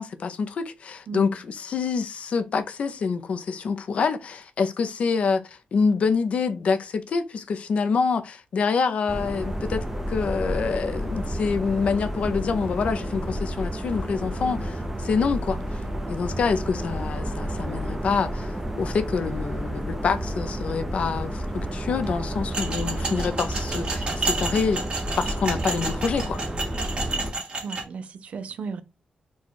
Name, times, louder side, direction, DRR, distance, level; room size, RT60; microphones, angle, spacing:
voice 1, 0.0-15.8 16.1-24.8 25.2-26.4, left 5 dB, 60° left, 0.5 m, -26 dB
sound 1, 9.1-27.3, equal, 10° right, 0.7 m, -31 dB
voice 2, 14.4-14.7 22.9-23.4 27.6-28.8, right 5 dB, 60° right, 0.5 m, -36 dB
sound 2, 22.5-27.8, right 3 dB, 45° right, 1.5 m, -31 dB
4.1 x 2.3 x 4.5 m
wide cardioid pair, 155°, 2 cm